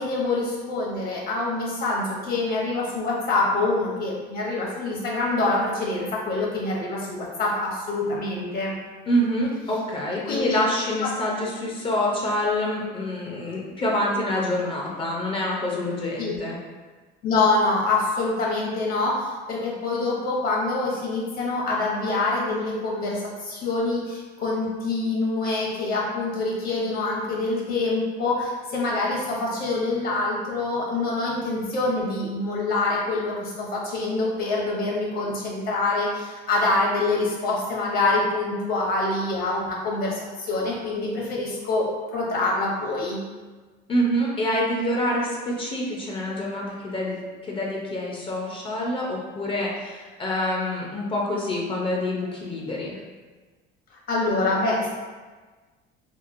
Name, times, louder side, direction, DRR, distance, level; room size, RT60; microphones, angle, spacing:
voice 1, 0.0-8.7 10.3-10.6 11.0-11.1 16.2-16.4 17.2-43.2 54.1-54.9, left 2 dB, 50° left, -3 dB, 0.8 m, -25 dB
voice 2, 9.1-16.6 43.9-53.0, left 1 dB, 30° left, -3 dB, 0.4 m, -26 dB
2.9 x 2.5 x 2.5 m, 1.3 s
cardioid pair, 140°, 20 cm